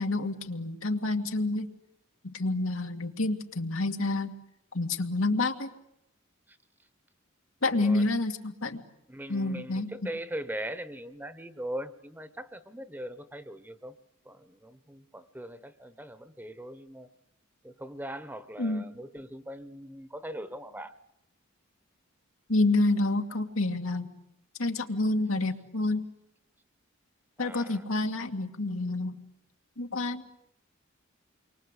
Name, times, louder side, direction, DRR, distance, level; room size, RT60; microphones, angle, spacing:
voice 1, 0.0-1.7 2.2-4.4 4.7-5.7 7.6-8.8 9.3-9.9 18.6-18.9 22.5-24.1 24.6-26.0 27.4-29.2 29.8-30.2, left 2 dB, 90° left, 4 dB, 2.3 m, -28 dB
voice 2, 7.6-8.1 9.1-14.0 14.2-17.1 17.6-21.0 27.4-27.9, right 1 dB, 10° right, 13 dB, 1.0 m, -40 dB
29.0 x 24.0 x 8.2 m, 0.79 s
head